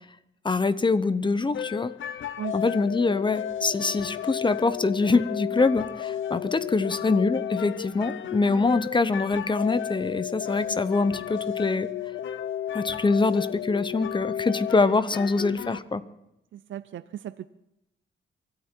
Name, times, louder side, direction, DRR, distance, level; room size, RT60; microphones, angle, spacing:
voice 1, 0.4-1.9 2.5-11.9 12.7-16.0, left 3 dB, 25° left, 14 dB, 0.9 m, -24 dB
sound 1, 1.5-15.8, left 10 dB, 70° left, 0.7 m, -33 dB
voice 2, 16.5-17.5, right 11 dB, 70° right, 13 dB, 0.6 m, -36 dB
24.0 x 13.5 x 4.5 m, 0.87 s
cardioid pair, 105°, 20 cm